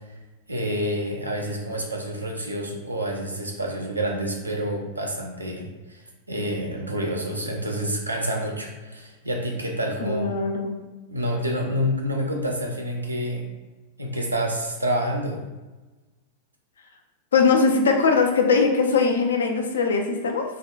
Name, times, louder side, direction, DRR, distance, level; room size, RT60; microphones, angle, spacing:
voice 1, 0.5-6.0 6.3-10.3 11.1-13.4 14.0-15.4, equal, 85° right, 1 dB, 0.5 m, -28 dB
voice 2, 10.0-10.8 17.3-20.4, left 4 dB, 70° left, 3 dB, 0.4 m, -21 dB
3.6 x 2.2 x 2.4 m, 1.2 s
figure-of-eight pair, 90°, 0 cm